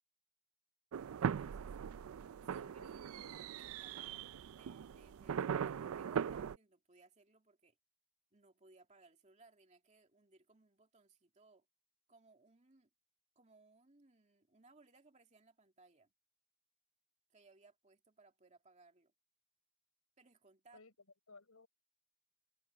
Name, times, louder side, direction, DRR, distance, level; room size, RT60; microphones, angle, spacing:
sound 1, 0.9-6.6, right 7 dB, 70° right, 0.4 m, -40 dB
voice 1, 1.2-1.7 2.5-3.1 3.6-7.8 8.3-11.7 12.1-12.9 13.4-16.1 17.3-19.1 20.2-20.8, right 3 dB, 30° right, 2.5 m, -66 dB
voice 2, 2.3-2.9 20.7-20.9 21.3-21.7, left 3 dB, 80° left, 4.9 m, -60 dB
head